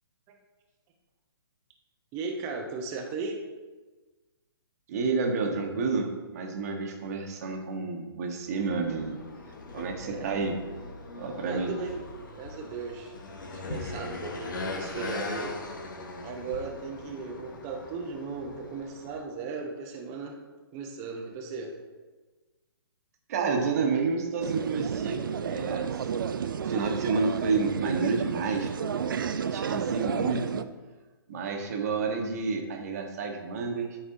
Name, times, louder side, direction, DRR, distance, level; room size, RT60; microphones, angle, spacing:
voice 1, 2.1-3.4 10.0-10.4 11.4-12.1 12.3-13.1 13.5-15.5 16.2-20.4 20.7-21.7, right 4 dB, 25° right, 1 dB, 0.9 m, -36 dB
voice 2, 4.9-9.2 9.7-10.6 11.2-11.7 23.3-25.9 26.6-28.7 29.4-30.6 31.3-34.0, right 4 dB, 40° right, 2 dB, 1.3 m, -29 dB
sound 1, 8.6-19.2, left 2 dB, 55° left, 1.2 m, -40 dB
sound 2, 24.4-30.6, right 7 dB, 60° right, 0.4 m, -31 dB
12.5 x 4.6 x 2.7 m, 1.3 s
figure-of-eight pair, 130°, 13 cm